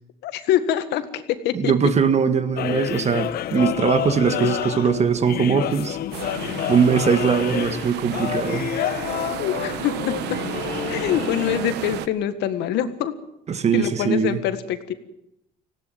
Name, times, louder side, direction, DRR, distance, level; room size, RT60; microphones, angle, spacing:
voice 1, 0.2-1.7 4.4-4.5 4.9-5.0 9.4-10.1 10.9-13.1 13.7-14.9, left 10 dB, 85° left, 11 dB, 1.8 m, -25 dB
voice 2, 1.5-6.0 6.7-8.8 13.5-14.4, right 6 dB, 40° right, 11 dB, 1.7 m, -21 dB
sound 1, 2.6-11.6, left 12 dB, 65° left, 1.0 m, -29 dB
sound 2, 6.1-12.1, right 13 dB, 85° right, 1.1 m, -32 dB
18.0 x 17.0 x 9.2 m, 0.81 s
cardioid pair, 110°, 17 cm